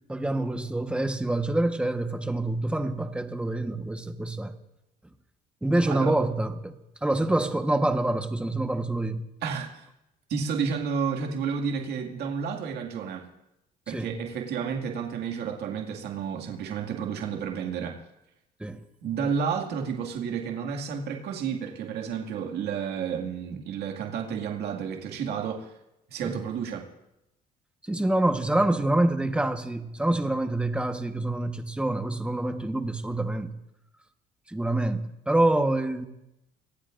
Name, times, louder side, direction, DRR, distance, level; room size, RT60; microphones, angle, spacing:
voice 1, 0.1-4.5 5.6-6.7 7.0-9.2 13.9-14.1 18.6-18.8 26.2-26.3 27.9-33.5 34.5-36.0, right 1 dB, 5° right, 6 dB, 1.2 m, -26 dB
voice 2, 9.4-9.8 10.3-13.3 13.9-18.0 19.0-25.7 26.1-26.8, right 6 dB, 75° right, 2 dB, 2.2 m, -31 dB
25.5 x 18.0 x 2.6 m, 0.88 s
cardioid pair, 110°, 17 cm